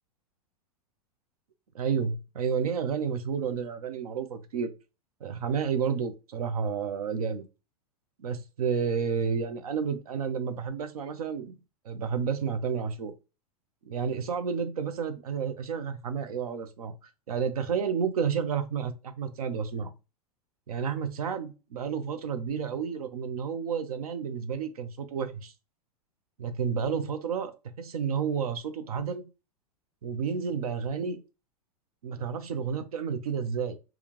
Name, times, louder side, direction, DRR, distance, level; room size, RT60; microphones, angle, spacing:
voice 1, 1.7-4.7 5.2-7.4 8.2-11.6 11.8-13.1 13.8-19.9 20.7-25.5 26.4-27.5 27.8-29.3 30.0-31.2 32.0-33.8, right 6 dB, 70° right, 0.7 m, -31 dB
3.5 x 2.3 x 2.9 m
figure-of-eight pair, 100°, 20 cm